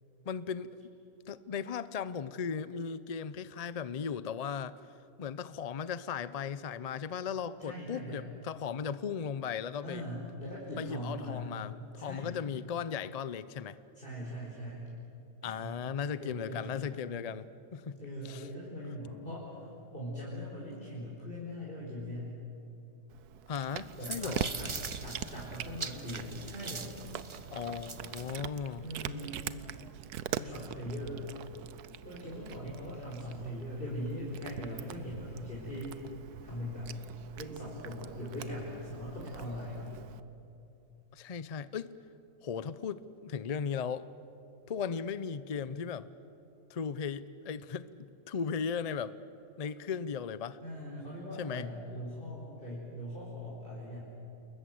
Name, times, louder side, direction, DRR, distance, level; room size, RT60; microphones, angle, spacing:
voice 1, 0.3-0.7 1.3-4.8 5.2-10.0 10.8-13.8 15.4-18.0 18.2-18.5 23.5-24.5 27.5-28.8 41.1-41.9 42.4-44.1 44.7-46.1 46.7-49.2 49.6-50.6 51.4-51.7, left 6 dB, 65° left, 16 dB, 0.3 m, -37 dB
voice 2, 7.6-8.3 9.8-11.5 12.0-12.3 13.9-14.9 15.4-15.7 16.2-17.0 18.0-19.7 19.9-22.3 24.0-26.9 28.8-29.3 30.3-31.2 32.0-35.9 36.4-36.9 37.4-40.0 50.6-54.0, equal, 35° left, -6 dB, 5.2 m, -41 dB
Cat, 23.1-40.2, right 10 dB, 75° right, 1.3 m, -43 dB
sound 1, 23.6-28.4, right 4 dB, 25° right, 0.6 m, -42 dB
28.5 x 21.5 x 7.8 m, 2.9 s
omnidirectional pair, 1.7 m